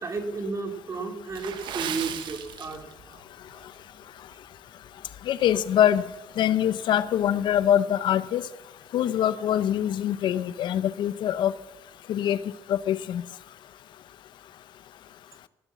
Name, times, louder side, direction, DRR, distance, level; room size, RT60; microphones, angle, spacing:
voice 1, 0.0-3.2 3.5-3.7, right 4 dB, 40° right, 5 dB, 2.5 m, -33 dB
Water / Splash splatter, 1.3-3.2 3.5-3.7 4.3-4.5 5.0-5.1, right 9 dB, 80° right, 1.2 m, -36 dB
voice 2, 5.3-6.0 6.4-8.4 8.9-11.5 12.1-12.4 12.7-13.2, left 10 dB, 80° left, 16 dB, 0.6 m, -24 dB
18.5 x 7.9 x 7.3 m, 1.0 s
cardioid pair, 90°, 8 cm